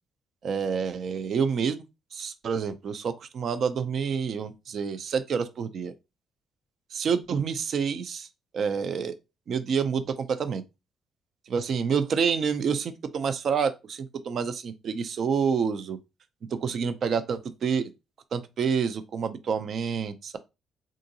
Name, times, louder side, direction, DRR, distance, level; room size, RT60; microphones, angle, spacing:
voice 1, 0.4-1.8 2.1-5.9 6.9-8.3 8.5-9.2 9.5-10.6 11.5-16.0 16.5-17.9 18.3-20.4, right 6 dB, 60° right, 0.4 m, -28 dB
3.7 x 2.4 x 2.7 m
cardioid pair, 90°, 0 cm